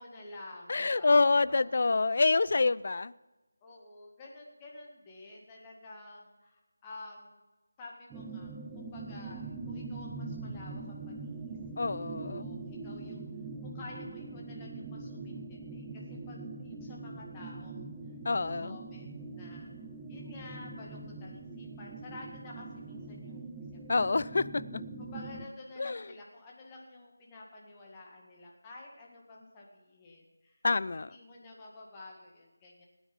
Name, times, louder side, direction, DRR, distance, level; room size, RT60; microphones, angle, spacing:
voice 1, 0.0-2.2 3.6-7.4 7.8-11.6 12.2-13.2 13.6-17.9 18.3-19.7 20.1-23.4 23.7-24.3 25.0-30.6 31.1-32.9, left 2 dB, 15° left, -2 dB, 2.0 m, -50 dB
voice 2, 0.7-3.1 11.8-12.5 18.3-18.8 23.9-24.8 25.8-26.0 30.6-31.1, left 3 dB, 45° left, 18 dB, 0.4 m, -27 dB
sound 1, 8.1-25.5, right 3 dB, 5° right, 0.8 m, -42 dB
17.5 x 9.4 x 5.3 m, 1.1 s
figure-of-eight pair, 165°, 0 cm